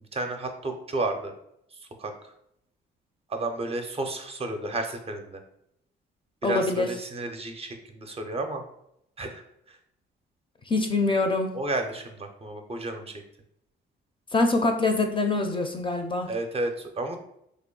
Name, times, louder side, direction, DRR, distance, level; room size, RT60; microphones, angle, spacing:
voice 1, 0.1-1.3 1.7-2.1 3.3-5.4 6.4-8.6 9.2-9.4 9.7-9.8 11.5-13.2 16.3-17.2, right 2 dB, 30° right, 5 dB, 0.5 m, -32 dB
voice 2, 6.4-6.9 10.7-11.5 14.3-16.3, left 2 dB, 25° left, 5 dB, 0.5 m, -24 dB
3.3 x 2.2 x 3.7 m, 0.77 s
cardioid pair, 90°, 20 cm